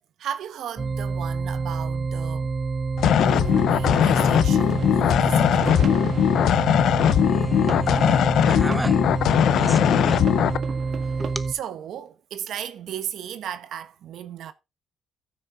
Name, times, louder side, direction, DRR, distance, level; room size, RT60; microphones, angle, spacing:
voice 1, 0.2-2.5 3.2-5.7 9.4-9.5 11.1-11.2 11.5-14.5, right 9 dB, 75° right, 1.0 m, -35 dB
sound 1, 0.8-11.5, right 4 dB, 35° right, 3.0 m, -28 dB
sound 2, 3.0-10.6, left 10 dB, 75° left, 0.4 m, -20 dB
sound 3, 3.3-11.3, right 6 dB, 55° right, 1.5 m, -39 dB
voice 2, 7.2-9.0 9.5-10.3 11.2-11.5, equal, 5° right, 0.9 m, -33 dB
14.5 x 6.5 x 3.7 m
cardioid pair, 90°, 0 cm